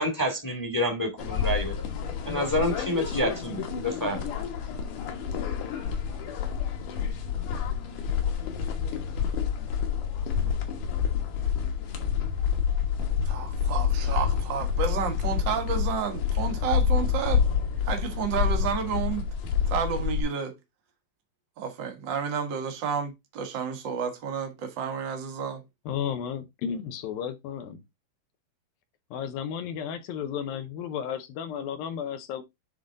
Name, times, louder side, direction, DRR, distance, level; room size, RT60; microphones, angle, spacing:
voice 1, 0.0-1.7 2.2-4.2, left 1 dB, 10° left, 0.9 m, -28 dB
sound 1, 1.2-20.2, left 7 dB, 65° left, 2.6 m, -28 dB
voice 2, 13.3-17.4 17.8-19.3 19.7-20.5 21.6-25.6, right 7 dB, 70° right, 1.1 m, -31 dB
voice 3, 25.9-27.8 29.1-32.4, left 8 dB, 80° left, 2.5 m, -33 dB
10.0 x 3.8 x 3.7 m
omnidirectional pair, 4.2 m